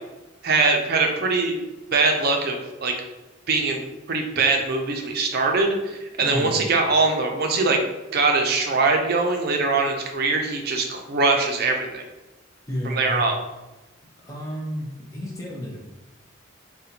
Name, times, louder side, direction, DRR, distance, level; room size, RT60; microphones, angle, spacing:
voice 1, 0.4-1.6 1.9-2.9 3.5-3.8 4.1-7.8 8.1-12.0 12.8-13.4, right 3 dB, 50° right, 3 dB, 0.5 m, -22 dB
voice 2, 6.2-6.6 12.7-13.3 14.2-15.8, equal, 15° left, -3 dB, 0.4 m, -31 dB
4.1 x 2.2 x 2.7 m, 1.0 s
head